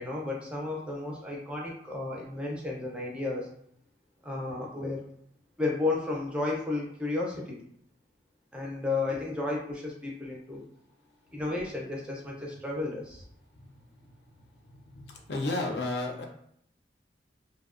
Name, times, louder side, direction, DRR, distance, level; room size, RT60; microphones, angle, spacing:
voice 1, 0.0-3.5 4.2-5.0 5.6-7.6 8.5-10.6 11.3-13.2, left 3 dB, 5° right, -2 dB, 0.4 m, -33 dB
voice 2, 14.9-16.3, left 2 dB, 70° left, 1 dB, 0.5 m, -32 dB
2.7 x 2.1 x 2.4 m, 0.68 s
head